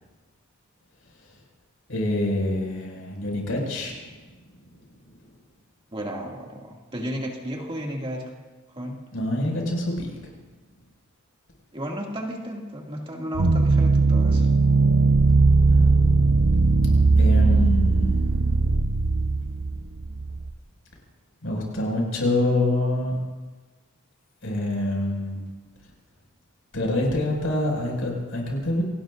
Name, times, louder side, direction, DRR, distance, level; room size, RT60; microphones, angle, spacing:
voice 1, 1.9-4.1 9.1-10.2 15.7-15.9 17.2-18.6 21.4-23.1 24.4-25.4 26.7-28.8, left 1 dB, 70° left, -1 dB, 6.0 m, -26 dB
voice 2, 5.9-8.3 8.8-9.0 11.7-14.5, equal, 25° right, -1 dB, 2.3 m, -33 dB
sound 1, 13.3-20.5, right 3 dB, 75° right, 0.8 m, -19 dB
28.5 x 19.0 x 2.6 m, 1.3 s
head